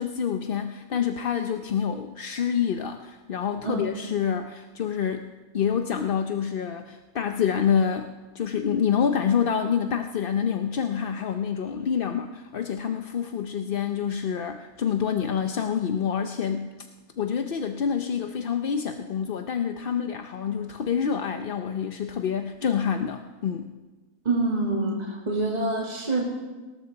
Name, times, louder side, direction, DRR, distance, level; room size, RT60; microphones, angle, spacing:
voice 1, 0.0-5.3 5.5-16.7 17.2-23.7, left 7 dB, 50° left, 6 dB, 0.7 m, -27 dB
voice 2, 24.3-26.2, right 2 dB, 30° right, -2 dB, 2.1 m, -26 dB
19.0 x 19.0 x 4.0 m, 1.3 s
omnidirectional pair, 1.5 m